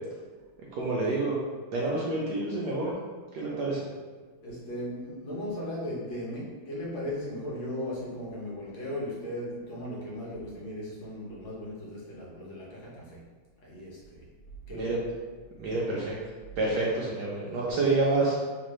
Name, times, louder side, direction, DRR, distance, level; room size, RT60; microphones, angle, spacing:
voice 1, 0.8-1.4 1.7-2.9 3.3-3.8 14.7-15.0 15.6-16.2 16.6-18.4, right 2 dB, 70° right, -5 dB, 1.0 m, -28 dB
voice 2, 4.4-13.2 13.6-14.3 14.7-15.0, left 1 dB, 80° left, -6 dB, 1.7 m, -37 dB
3.6 x 2.5 x 3.1 m, 1.4 s
omnidirectional pair, 2.2 m